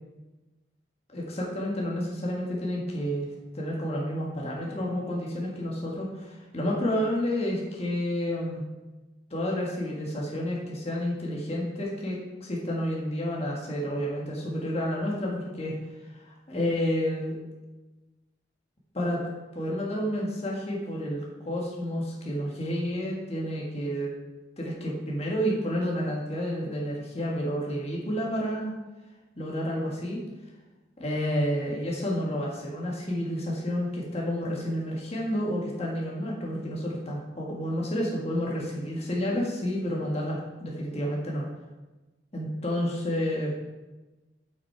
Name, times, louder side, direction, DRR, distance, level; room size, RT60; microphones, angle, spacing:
voice 1, 1.1-3.3 3.5-8.6 9.3-15.8 16.1-17.3 18.9-19.2 19.5-24.1 24.6-28.7 29.4-30.2 31.0-41.5 42.3-43.5, equal, 35° left, -3 dB, 1.5 m, -30 dB
8.1 x 6.0 x 4.4 m, 1.1 s
head